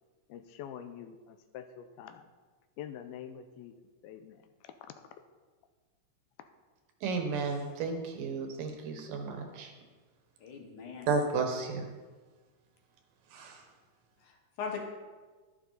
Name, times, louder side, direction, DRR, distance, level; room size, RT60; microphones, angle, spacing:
voice 1, 0.3-2.3 2.8-3.7 4.0-4.9, left 9 dB, 90° left, 9 dB, 2.6 m, -46 dB
voice 2, 7.0-9.7 11.1-11.8 13.3-13.6, right 4 dB, 70° right, 4 dB, 2.6 m, -33 dB
voice 3, 10.4-11.1 14.2-14.8, left 6 dB, 65° left, 2 dB, 2.5 m, -40 dB
11.5 x 11.5 x 4.0 m, 1.4 s
omnidirectional pair, 4.3 m